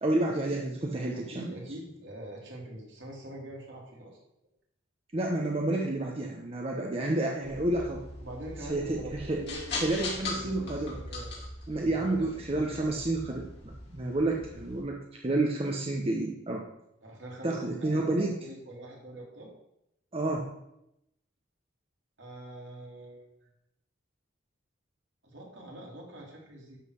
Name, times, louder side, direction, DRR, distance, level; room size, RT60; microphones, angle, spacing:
voice 1, 0.0-1.5 5.1-8.0 8.7-9.4 9.8-11.0 11.7-16.7 17.4-18.4 20.1-20.5, right 2 dB, 30° right, 0 dB, 0.8 m, -30 dB
voice 2, 1.1-4.2 8.2-11.5 11.7-13.1 17.0-19.5 22.2-23.3 25.2-26.8, right 1 dB, 65° right, -1 dB, 2.7 m, -44 dB
sound 1, 7.4-14.8, left 2 dB, 55° left, 2.8 m, -40 dB
11.5 x 4.0 x 6.3 m, 0.82 s
head